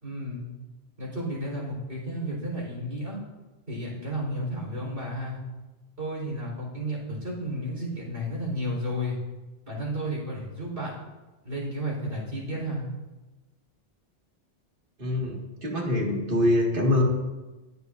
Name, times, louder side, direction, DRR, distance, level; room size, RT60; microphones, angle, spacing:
voice 1, 0.0-0.5 1.0-3.2 3.7-5.4 6.0-9.2 9.7-10.9 11.4-12.8, equal, 85° right, -3 dB, 4.4 m, -32 dB
voice 2, 15.0-17.0, left 1 dB, 60° right, -2 dB, 2.1 m, -24 dB
20.0 x 8.2 x 2.6 m, 1.1 s
omnidirectional pair, 1.0 m